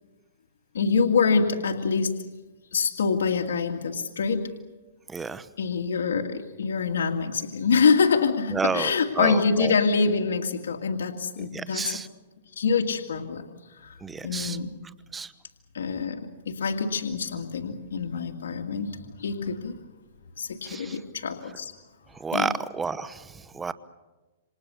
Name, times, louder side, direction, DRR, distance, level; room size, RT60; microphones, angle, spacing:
voice 1, 0.7-2.2 2.7-4.5 5.6-12.0 12.6-14.0 14.2-14.8 15.7-19.8 20.4-21.7 22.3-22.5, left 5 dB, 85° left, 2 dB, 2.1 m, -25 dB
voice 2, 5.1-5.5 8.5-9.7 11.5-12.1 14.0-14.6 15.1-15.3 20.6-21.0 22.2-23.7, right 5 dB, 10° right, 14 dB, 0.9 m, -30 dB
28.0 x 26.5 x 7.0 m, 1.2 s
hypercardioid pair, 150°, 0 cm